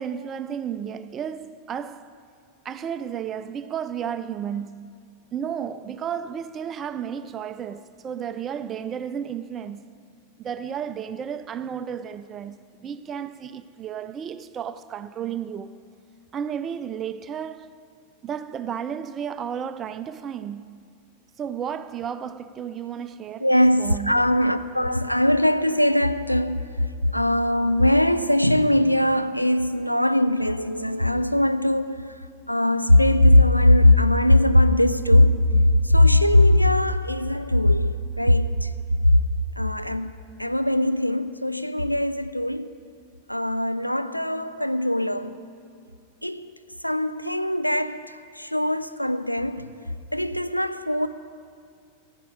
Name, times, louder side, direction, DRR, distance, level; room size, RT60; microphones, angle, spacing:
voice 1, 0.0-2.2 2.6-4.9 5.3-9.9 10.4-15.8 16.3-17.8 18.2-20.8 21.4-24.1, right 8 dB, 25° right, 0.3 m, -33 dB
voice 2, 23.4-26.7 27.1-32.1 32.5-38.7 39.1-39.2 39.6-42.7 43.3-45.4 46.2-46.5 46.8-49.7 50.1-51.1, left 1 dB, 90° left, 0.4 m, -20 dB
11.0 x 7.3 x 9.7 m
figure-of-eight pair, 90°, 0 cm